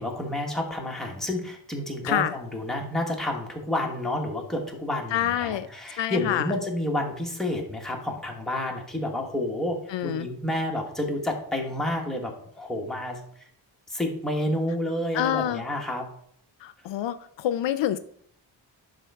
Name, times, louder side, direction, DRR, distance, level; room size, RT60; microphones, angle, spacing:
voice 1, 0.0-13.2 13.9-16.1, left 1 dB, ahead, 0 dB, 1.2 m, -30 dB
voice 2, 2.0-2.3 5.1-5.7 6.0-6.5 9.9-10.3 15.1-15.6 16.6-18.0, left 11 dB, 75° left, 13 dB, 0.5 m, -27 dB
11.0 x 3.8 x 3.5 m, 0.67 s
wide cardioid pair, 135°, 44 cm